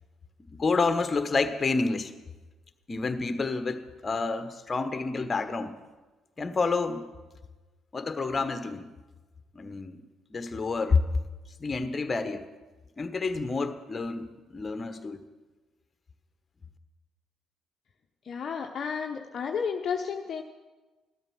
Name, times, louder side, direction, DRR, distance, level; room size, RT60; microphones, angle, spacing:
voice 1, 0.5-2.1 2.9-5.7 6.4-7.1 7.9-8.9 9.5-10.0 10.3-11.0 11.6-12.4 13.0-15.2, left 4 dB, 30° left, 9 dB, 1.4 m, -29 dB
voice 2, 18.2-20.4, left 6 dB, 50° left, 3 dB, 0.9 m, -32 dB
15.0 x 12.5 x 6.4 m, 1.2 s
figure-of-eight pair, 45°, 0 cm